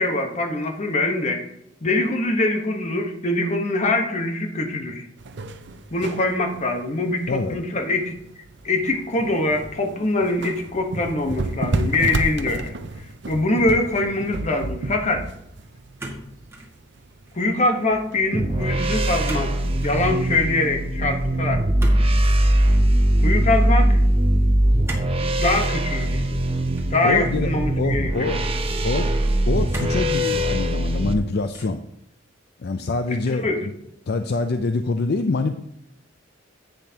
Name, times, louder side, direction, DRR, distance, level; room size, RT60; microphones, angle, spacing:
voice 1, 0.0-1.4 1.8-5.1 5.9-8.1 8.6-12.7 13.3-15.3 17.3-19.5 19.8-21.6 23.2-24.0 25.4-26.3 26.9-28.3 33.3-33.7, left 2 dB, 40° left, 4 dB, 1.1 m, -23 dB
sound 1, 5.2-20.1, right 2 dB, 65° right, 0.7 m, -32 dB
voice 2, 7.3-7.6 27.0-27.5 27.8-28.4 28.8-29.1 29.4-31.8 32.6-33.5 34.1-35.5, left 3 dB, 55° left, 8 dB, 0.5 m, -25 dB
sound 2, 16.0-16.7 17.1-17.5 19.2-19.5 19.8-20.0 21.8-22.6 24.8-25.2 25.6-25.8 26.7-27.5 28.2-28.3 29.7-30.1 30.7-31.2 31.5-31.9, right 1 dB, 15° right, 1.8 m, -37 dB
sound 3, 18.3-31.1, right 1 dB, 30° right, 0.8 m, -21 dB
10.5 x 8.2 x 2.9 m, 0.78 s
head